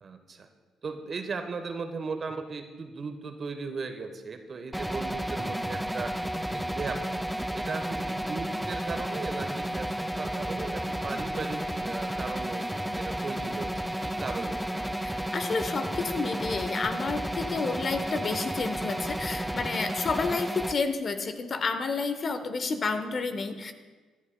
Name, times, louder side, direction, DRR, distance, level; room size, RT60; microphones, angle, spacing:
voice 1, 0.0-0.5 0.8-6.1 6.5-7.0 7.5-12.7 12.9-14.9, right 4 dB, 45° right, 7 dB, 1.1 m, -37 dB
sound 1, 4.7-20.7, right 1 dB, ahead, 0.5 m, -32 dB
voice 2, 15.0-23.7, left 4 dB, 45° left, 9 dB, 1.0 m, -30 dB
25.5 x 11.0 x 2.2 m, 1.4 s
hypercardioid pair, 45°, 0 cm